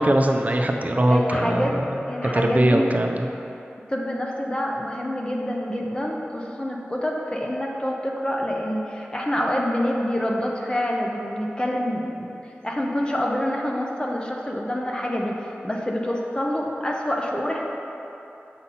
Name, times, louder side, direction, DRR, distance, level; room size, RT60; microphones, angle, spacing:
voice 1, 0.0-2.0 2.3-3.3, right 1 dB, 35° right, 3 dB, 0.6 m, -21 dB
voice 2, 1.1-1.8 2.1-2.9 3.9-17.6, equal, 20° left, -1 dB, 0.8 m, -27 dB
6.8 x 5.8 x 4.2 m, 2.9 s
wide cardioid pair, 50°, 4 cm